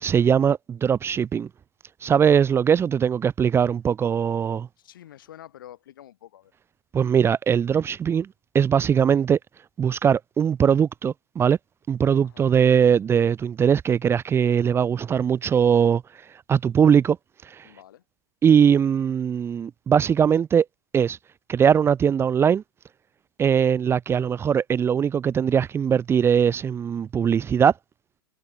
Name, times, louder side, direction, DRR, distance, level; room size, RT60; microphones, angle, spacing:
voice 1, 0.0-1.5 2.0-4.7 6.9-8.3 8.5-9.4 9.8-11.6 11.9-16.0 16.5-17.2 17.4-17.7 18.4-20.7 20.9-21.2 21.5-22.6 23.4-27.7, right 7 dB, 20° right, 0.7 m, -20 dB
voice 2, 4.8-6.5 12.2-12.5 17.6-18.0, left 12 dB, 75° left, 7.5 m, -47 dB
hypercardioid pair, 105°, 11 cm